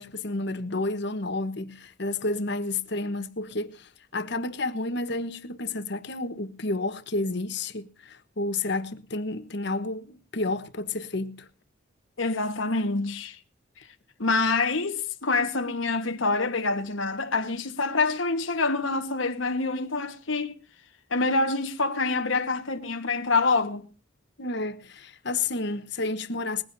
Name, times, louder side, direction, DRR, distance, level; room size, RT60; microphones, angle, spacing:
voice 1, 0.0-11.5 24.4-26.6, left 2 dB, 60° left, 1.2 m, -31 dB
voice 2, 12.2-13.4 13.8-13.9 14.2-20.5 21.1-23.9, left 3 dB, 85° left, 1.4 m, -26 dB
20.5 x 15.5 x 2.7 m
head